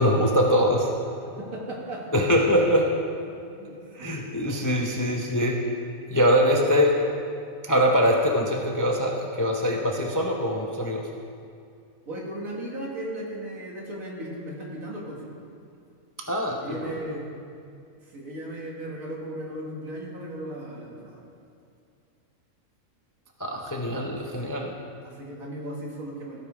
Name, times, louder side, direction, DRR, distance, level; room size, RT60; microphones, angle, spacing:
voice 1, 0.0-1.3 2.1-2.9 3.9-5.7 6.1-6.9 7.6-11.1 16.3-17.2 23.4-24.7, equal, 25° left, 0 dB, 0.4 m, -23 dB
voice 2, 1.4-2.2 3.3-4.2 12.1-15.3 16.6-17.3 18.1-21.2 24.4-24.5 25.0-26.4, right 1 dB, 75° right, -2 dB, 2.0 m, -36 dB
15.5 x 5.1 x 4.8 m, 2.4 s
omnidirectional pair, 1.4 m